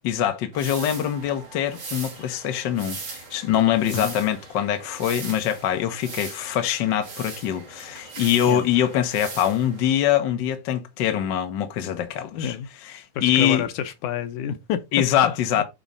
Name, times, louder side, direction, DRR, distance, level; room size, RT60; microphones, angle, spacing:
voice 1, 0.0-12.6 12.8-13.7 14.9-15.6, left 10 dB, 55° left, 1.3 m, -23 dB
sound 1, 0.5-9.9, right 4 dB, 45° right, 2.4 m, -39 dB
voice 2, 12.3-12.7 13.2-14.8 15.2-15.6, left 9 dB, 90° left, 2.3 m, -29 dB
8.8 x 3.2 x 4.0 m
omnidirectional pair, 3.4 m